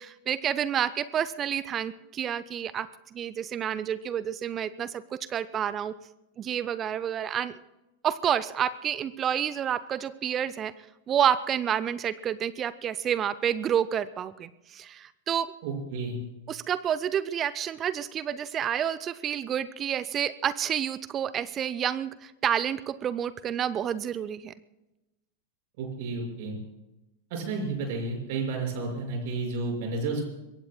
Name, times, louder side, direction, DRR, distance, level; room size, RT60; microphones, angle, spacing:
voice 1, 0.0-5.9 6.4-7.6 8.0-10.7 11.1-15.5 16.5-24.5, right 9 dB, 25° right, 15 dB, 0.6 m, -29 dB
voice 2, 15.6-16.2 25.8-26.6 27.3-30.2, right 3 dB, 50° right, 2 dB, 5.9 m, -31 dB
24.5 x 22.5 x 2.3 m, 0.97 s
figure-of-eight pair, 90°, 0 cm